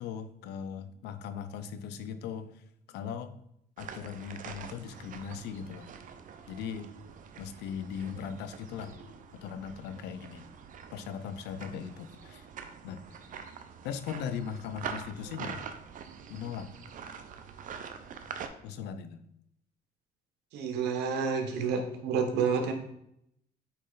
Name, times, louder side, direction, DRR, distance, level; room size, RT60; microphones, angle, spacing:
voice 1, 0.0-3.4 3.8-5.9 6.5-6.9 7.4-9.0 9.3-10.5 10.9-12.5 12.8-13.2 13.8-15.6 16.3-16.7 18.6-19.2, left 7 dB, 85° left, 11 dB, 0.6 m, -39 dB
sound 1, 3.8-18.5, right 7 dB, 50° right, 0.6 m, -45 dB
voice 2, 20.5-22.7, right 6 dB, 85° right, 4 dB, 1.1 m, -29 dB
8.2 x 3.2 x 3.9 m, 0.75 s
cardioid pair, 110°, 17 cm